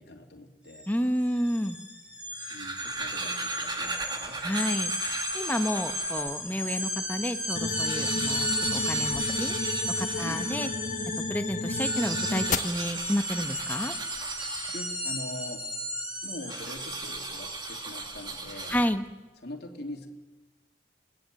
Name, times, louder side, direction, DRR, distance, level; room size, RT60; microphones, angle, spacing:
voice 1, 0.0-0.9 2.5-4.5 10.2-10.5 14.7-15.7 16.2-18.8 19.4-20.1, left 1 dB, 60° left, 1 dB, 2.9 m, -43 dB
sound 1, 0.7-0.8 1.1-18.4, equal, 5° right, 4.5 m, -34 dB
voice 2, 0.9-1.8 4.4-9.5 10.0-10.7 11.3-13.9 18.7-19.0, equal, 10° left, 7 dB, 1.1 m, -30 dB
sound 2, 2.2-6.4 6.9-7.0 7.2-7.3 7.6-10.8 11.7-15.2 16.5-19.2, right 3 dB, 25° right, 1.8 m, -37 dB
sound 3, 7.6-12.6, left 3 dB, 45° left, 1.2 m, -33 dB
27.5 x 20.0 x 7.7 m, 1.2 s
head